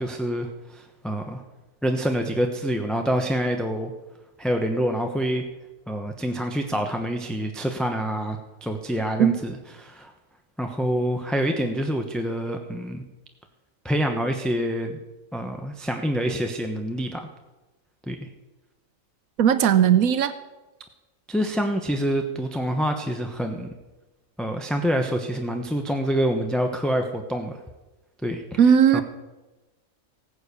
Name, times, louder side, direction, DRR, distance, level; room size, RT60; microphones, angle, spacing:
voice 1, 0.0-1.4 1.8-3.9 4.4-5.4 5.9-10.1 10.6-13.0 13.8-15.0 15.3-17.3 18.1-18.3 21.3-23.7 24.4-27.6 28.2-28.6 28.9-29.0, equal, ahead, 3 dB, 0.8 m, -26 dB
voice 2, 19.4-20.3 28.6-29.0, right 8 dB, 90° right, 11 dB, 1.1 m, -17 dB
16.5 x 9.8 x 6.9 m, 1.1 s
omnidirectional pair, 1.4 m